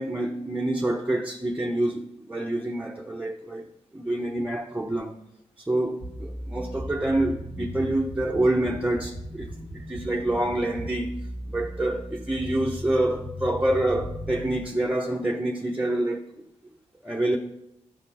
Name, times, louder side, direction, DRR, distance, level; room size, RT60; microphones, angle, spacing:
voice 1, 0.0-3.7 3.9-5.2 5.7-11.2 11.5-16.3 17.0-17.4, right 1 dB, 10° right, 0.8 m, -27 dB
sound 1, 6.0-14.7, equal, 85° left, 2.5 m, -37 dB
13.0 x 4.3 x 4.2 m
cardioid pair, 50°, 13 cm